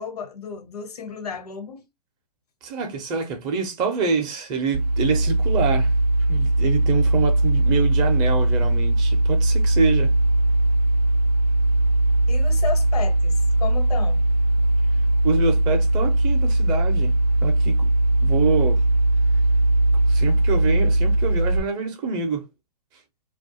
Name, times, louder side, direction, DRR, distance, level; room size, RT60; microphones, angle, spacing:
voice 1, 0.0-1.9 12.3-14.2, left 6 dB, 75° left, 0.8 m, -33 dB
voice 2, 2.6-5.9 6.3-10.1 15.2-17.1 17.4-17.9 18.2-18.8 20.1-22.4, right 5 dB, 20° right, 0.5 m, -26 dB
sound 1, 4.7-21.6, right 1 dB, 80° right, 0.4 m, -19 dB
2.3 x 2.0 x 2.7 m
hypercardioid pair, 125°, 20 cm